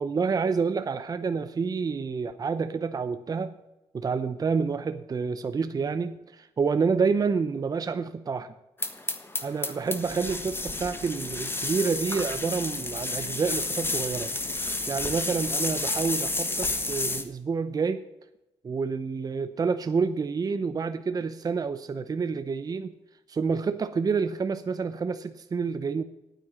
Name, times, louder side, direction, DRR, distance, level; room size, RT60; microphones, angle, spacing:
voice 1, 0.0-3.5 3.9-8.5 9.4-14.3 14.9-18.0 18.6-22.9 23.3-26.0, right 5 dB, 35° right, 11 dB, 0.7 m, -28 dB
sound 1, 8.8-17.2, left 2 dB, 20° left, 1.5 m, -31 dB
9.2 x 9.1 x 7.3 m, 0.96 s
cardioid pair, 85°, 11 cm